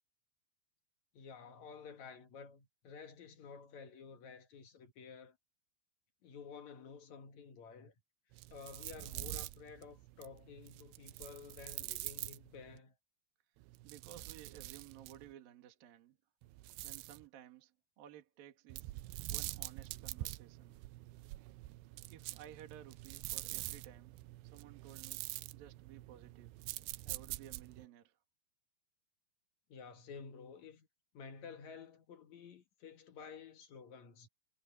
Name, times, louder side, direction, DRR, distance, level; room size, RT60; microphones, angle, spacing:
voice 1, 1.1-5.4 6.2-7.9 8.5-12.9 29.7-30.9 31.1-34.3, left 5 dB, 60° left, 2.0 m, -52 dB
sound 1, 8.3-12.8 13.6-15.3 16.4-17.3 18.7-27.9, right 19 dB, 90° right, 2.5 m, -46 dB
voice 2, 13.8-16.2 16.8-18.9 19.3-20.8 21.9-24.2 24.4-26.6 27.0-28.2, right 11 dB, 55° right, 3.3 m, -56 dB
omnidirectional pair, 5.5 m